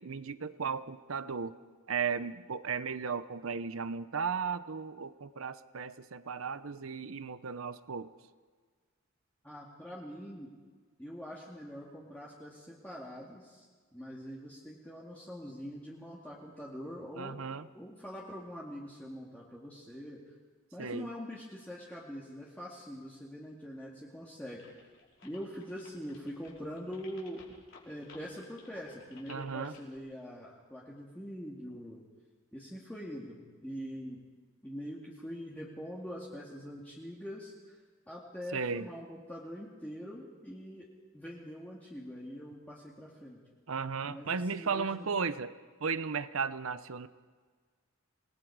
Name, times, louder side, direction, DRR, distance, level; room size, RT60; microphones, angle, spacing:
voice 1, 0.0-1.6 1.9-8.1 17.2-17.7 20.8-21.1 29.3-29.7 38.5-38.9 43.7-47.1, right 5 dB, 85° right, 14 dB, 0.7 m, -35 dB
voice 2, 9.4-10.5 11.0-13.7 13.9-17.4 17.7-20.2 20.7-24.6 25.2-27.4 27.9-32.0 32.5-34.2 34.6-37.8 38.1-40.9 41.1-43.4 44.1-45.1, equal, 10° left, -5 dB, 2.2 m, -44 dB
sound 1, 24.6-30.0, left 4 dB, 65° left, 5.1 m, -57 dB
28.0 x 20.0 x 4.8 m, 1.5 s
head